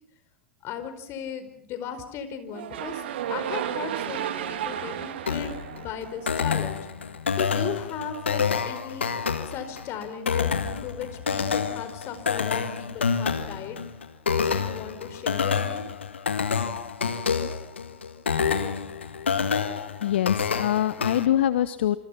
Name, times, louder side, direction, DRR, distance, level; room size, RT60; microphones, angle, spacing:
voice 1, 0.6-6.8 7.4-9.1 9.4-13.8 14.3-15.8, left 7 dB, 45° left, 10 dB, 4.9 m, -36 dB
sound 1, 2.5-6.7, right 10 dB, 70° right, 2.4 m, -33 dB
sound 2, 5.3-21.3, left 6 dB, 85° left, 1.9 m, -28 dB
voice 2, 20.0-22.0, left 11 dB, 70° left, 14 dB, 1.1 m, -24 dB
27.5 x 26.5 x 5.8 m, 0.65 s
hypercardioid pair, 90°, 6 cm